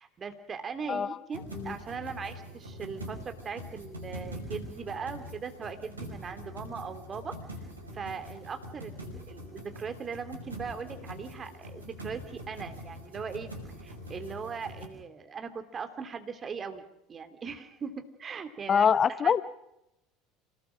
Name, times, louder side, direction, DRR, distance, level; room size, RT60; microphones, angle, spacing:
voice 1, 0.0-7.3 7.9-18.9 19.2-19.3, right 6 dB, 30° right, 8 dB, 2.8 m, -39 dB
sound 1, 1.3-14.9, equal, 85° right, 5.3 m, -43 dB
voice 2, 18.7-19.4, left 7 dB, 30° left, 17 dB, 0.8 m, -24 dB
27.0 x 19.5 x 6.3 m, 0.85 s
figure-of-eight pair, 70°, 0 cm